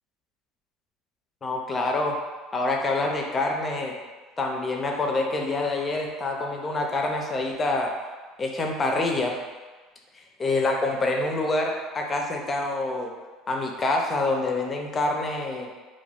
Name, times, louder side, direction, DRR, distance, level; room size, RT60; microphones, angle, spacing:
voice 1, 1.4-2.2 2.5-4.0 4.4-7.9 8.4-9.4 10.1-13.1 13.5-15.7, left 2 dB, 25° left, 1 dB, 0.4 m, -26 dB
2.3 x 2.1 x 3.3 m, 1.3 s
cardioid pair, 125°, 0 cm